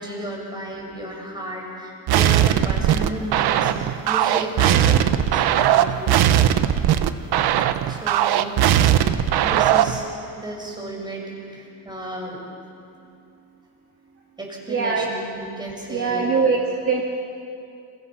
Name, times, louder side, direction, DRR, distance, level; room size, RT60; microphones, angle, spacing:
voice 1, 0.0-6.3 7.9-8.5 9.4-10.1 10.4-12.4 14.4-16.3, right 1 dB, 10° right, -1 dB, 5.8 m, -33 dB
sound 1, 2.1-10.0, right 11 dB, 80° right, 1.2 m, -19 dB
voice 2, 14.7-15.1 15.9-17.0, right 5 dB, 35° right, 0 dB, 2.1 m, -22 dB
30.0 x 27.0 x 5.9 m, 2.6 s
cardioid pair, 155°, 38 cm